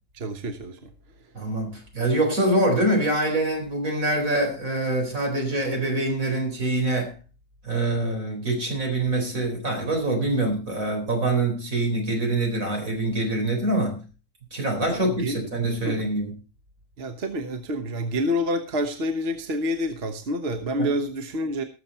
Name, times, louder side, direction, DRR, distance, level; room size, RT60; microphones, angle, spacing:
voice 1, 0.1-0.9 14.9-15.5 15.8-16.1 17.0-21.6, equal, 50° right, 1.4 m, -28 dB
voice 2, 1.3-7.2 7.6-14.1 14.5-16.4 20.8-20.9, right 2 dB, 85° right, 4.8 m, -25 dB
19.0 x 7.2 x 4.4 m
omnidirectional pair, 1.4 m